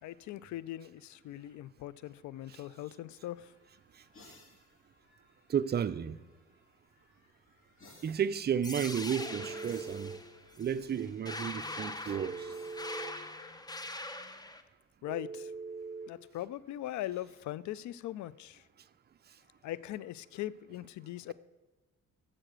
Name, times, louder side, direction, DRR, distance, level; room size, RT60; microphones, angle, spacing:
voice 1, 0.0-3.5 15.0-15.5 16.1-18.6 19.6-21.3, left 13 dB, 70° left, 0.4 m, -40 dB
sound 1, 3.1-14.2 15.8-17.4, left 2 dB, 45° left, 2.5 m, -63 dB
voice 2, 5.5-6.2 8.0-10.2 10.6-12.5, right 8 dB, 35° right, 0.5 m, -33 dB
sound 2, 8.6-14.6, left 2 dB, 15° left, 0.8 m, -42 dB
Telephone, 9.2-10.2 12.1-13.2 15.1-16.1, right 4 dB, 5° right, 2.0 m, -42 dB
7.4 x 6.7 x 6.1 m
cardioid pair, 90°, 30 cm